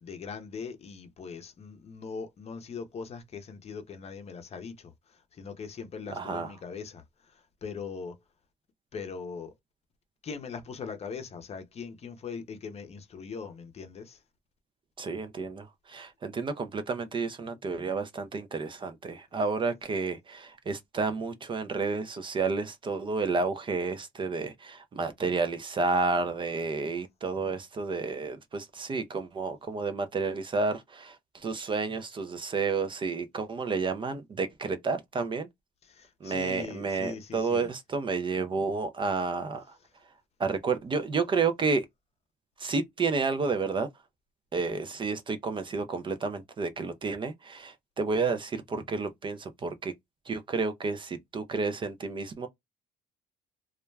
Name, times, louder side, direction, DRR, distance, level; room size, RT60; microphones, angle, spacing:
voice 1, 0.0-8.2 8.9-9.5 10.2-14.2 35.8-37.7, left 5 dB, 40° left, 0.6 m, -41 dB
voice 2, 6.2-6.5 15.0-35.5 36.2-39.6 40.4-41.9 42.6-43.9 44.5-49.9 50.3-52.5, right 4 dB, 30° right, 0.4 m, -31 dB
2.3 x 2.1 x 3.2 m
cardioid pair, 110°, 17 cm